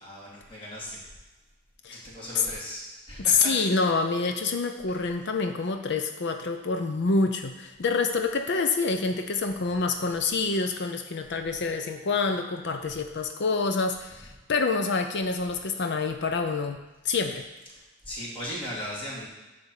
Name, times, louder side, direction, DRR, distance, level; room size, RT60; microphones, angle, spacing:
voice 1, 0.0-1.1 1.9-3.5 4.9-5.1 18.0-19.3, equal, 25° left, -6 dB, 2.7 m, -38 dB
voice 2, 3.2-16.8 17.0-17.4, left 4 dB, 60° left, 6 dB, 0.6 m, -27 dB
10.5 x 3.5 x 7.2 m, 1.1 s
head